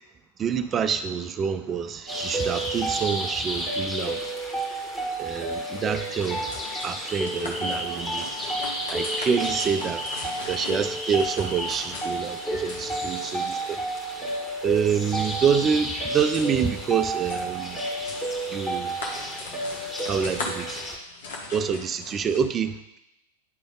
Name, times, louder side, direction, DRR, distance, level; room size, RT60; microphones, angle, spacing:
voice 1, 0.4-4.3 5.2-6.5 6.8-8.3 8.9-10.0 10.5-13.8 14.6-17.8 18.5-19.0 20.1-20.8 21.5-23.0, right 7 dB, 25° right, 11 dB, 0.4 m, -27 dB
sound 1, 2.1-21.0, right 1 dB, 5° left, 1.8 m, -31 dB
sound 2, 5.9-22.4, left 3 dB, 60° left, 1.2 m, -40 dB
10.0 x 3.4 x 3.7 m, 0.88 s
figure-of-eight pair, 90°, 0 cm